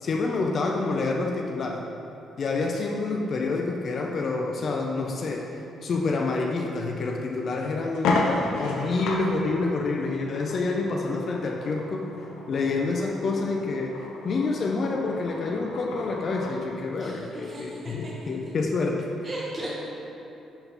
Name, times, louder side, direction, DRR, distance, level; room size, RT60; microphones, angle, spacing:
voice 1, 0.0-1.8 2.4-5.4 5.8-12.1 12.5-14.0 14.2-19.1, left 3 dB, 50° left, 1 dB, 0.6 m, -28 dB
sound 1, 7.0-7.1 7.5-7.6 7.9-16.6, left 3 dB, 85° left, 0.7 m, -33 dB
voice 2, 17.0-17.9 19.2-19.7, right 1 dB, 30° right, -6 dB, 1.1 m, -37 dB
10.5 x 3.9 x 4.0 m, 2.9 s
cardioid pair, 90°, 0 cm